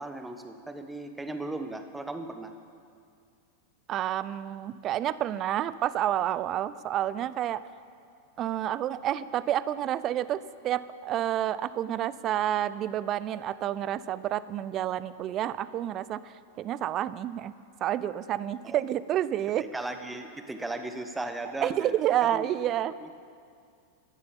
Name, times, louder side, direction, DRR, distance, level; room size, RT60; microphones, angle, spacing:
voice 1, 0.0-2.5 18.6-18.8 19.6-21.9 22.3-22.5 23.0-23.2, right 2 dB, 10° right, 7 dB, 1.2 m, -37 dB
voice 2, 3.9-7.6 8.4-16.2 16.6-17.5 17.8-19.7 21.6-22.9, right 12 dB, 35° right, 17 dB, 0.5 m, -29 dB
14.5 x 11.5 x 7.3 m, 2.3 s
figure-of-eight pair, 90°, 0 cm